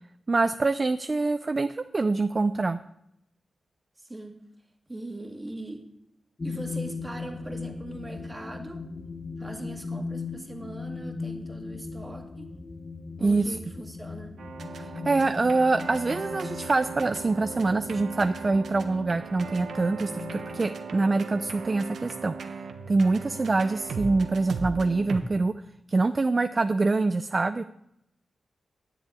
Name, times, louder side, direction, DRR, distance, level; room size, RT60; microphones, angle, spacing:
voice 1, 0.3-2.8 13.2-13.6 14.8-22.3 22.9-25.5 25.9-27.6, right 3 dB, 30° right, 10 dB, 0.4 m, -25 dB
voice 2, 4.0-4.4 4.9-5.9 6.4-8.8 9.4-12.5 13.2-14.4, right 2 dB, 15° right, 3 dB, 1.8 m, -40 dB
sound 1, 6.4-20.7, left 4 dB, 35° left, 0.9 m, -39 dB
sound 2, 14.4-25.2, right 4 dB, 85° right, 1.2 m, -38 dB
9.9 x 7.3 x 8.9 m, 0.79 s
wide cardioid pair, 130°, 0 cm